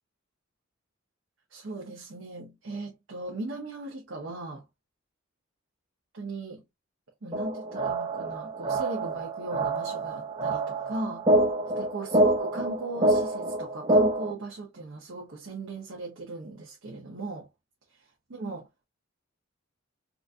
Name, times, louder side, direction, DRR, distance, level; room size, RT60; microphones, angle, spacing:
voice 1, 1.5-4.6 6.1-6.6 7.2-11.3 11.8-17.5 17.9-18.7, right 2 dB, 65° right, 0.9 m, -38 dB
sound 1, 7.3-14.3, right 1 dB, 30° right, 0.7 m, -26 dB
4.0 x 2.6 x 2.3 m
head